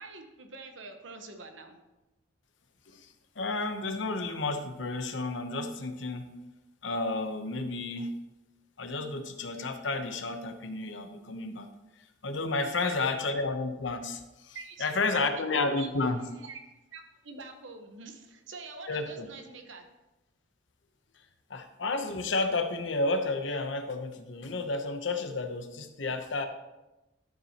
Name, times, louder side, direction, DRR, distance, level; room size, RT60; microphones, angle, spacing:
voice 1, 0.0-1.8 12.5-13.0 14.5-16.1 16.4-16.6 16.9-19.9, right 3 dB, 80° right, 6 dB, 1.1 m, -45 dB
voice 2, 3.4-6.3 6.8-8.1 8.8-11.7 12.2-16.2 18.9-19.3 21.5-26.5, left 3 dB, 75° left, 7 dB, 0.9 m, -31 dB
12.0 x 7.2 x 2.9 m, 1.0 s
head